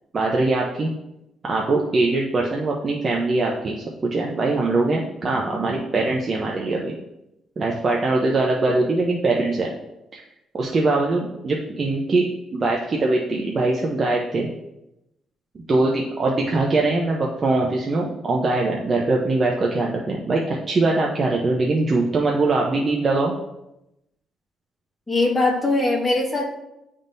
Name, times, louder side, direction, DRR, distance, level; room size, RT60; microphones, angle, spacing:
voice 1, 0.1-0.9 1.4-3.8 4.1-6.9 7.6-9.7 10.1-10.2 10.5-12.3 12.5-14.5 15.7-23.3, right 2 dB, 40° right, -2 dB, 0.8 m, -22 dB
voice 2, 25.1-26.5, left 2 dB, 20° left, -3 dB, 1.7 m, -21 dB
10.5 x 3.6 x 2.7 m, 0.89 s
cardioid pair, 90°, 0 cm